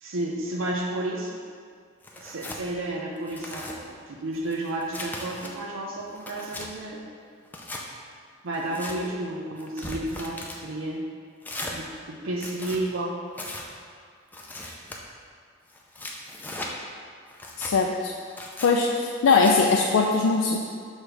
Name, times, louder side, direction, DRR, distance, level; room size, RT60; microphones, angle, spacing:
voice 1, 0.0-1.4 2.2-7.0 8.4-11.0 11.7-13.2, right 1 dB, 90° right, -1 dB, 0.6 m, -32 dB
Tearing, 2.0-2.6 3.2-3.8 4.3-5.5 6.0-6.7 7.4-7.8 8.5-9.0 9.6-10.6 11.4-11.8 12.3-12.8 13.3-13.6 14.3-15.0 15.7-16.7 17.3-17.7 18.3-18.7 19.2-19.5, left 1 dB, 10° left, 0.5 m, -38 dB
voice 2, 17.6-18.1 18.6-20.6, left 4 dB, 85° left, 0 dB, 0.4 m, -21 dB
6.2 x 3.2 x 4.9 m, 2.1 s
head